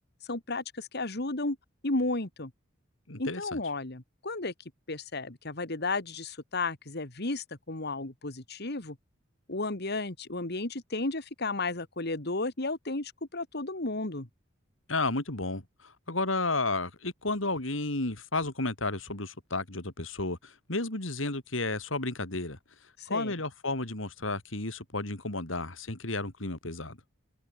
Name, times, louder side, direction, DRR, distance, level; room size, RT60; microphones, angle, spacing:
voice 1, 0.3-1.6 1.8-2.5 3.2-4.5 4.9-9.0 9.5-14.3 23.0-23.3, left 2 dB, 55° left, 2.4 m, -33 dB
voice 2, 3.1-3.6 14.9-22.6 23.1-27.0, left 2 dB, 85° left, 4.0 m, -32 dB
head